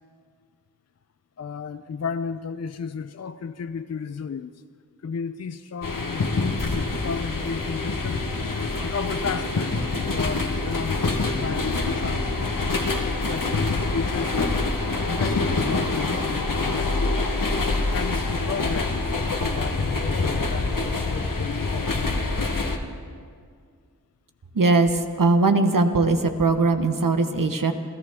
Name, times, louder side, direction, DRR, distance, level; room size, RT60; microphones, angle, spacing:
voice 1, 1.4-4.6 5.0-8.3 8.8-9.8 10.1-12.3 13.1-14.6 15.1-17.2 17.9-22.3, left 5 dB, 50° left, 11 dB, 0.5 m, -33 dB
sound 1, 5.8-22.8, left 3 dB, 65° left, 1.2 m, -25 dB
voice 2, 24.5-27.7, right 3 dB, 65° right, 7 dB, 1.1 m, -20 dB
26.5 x 14.5 x 3.6 m, 2.1 s
wide cardioid pair, 65°, 35 cm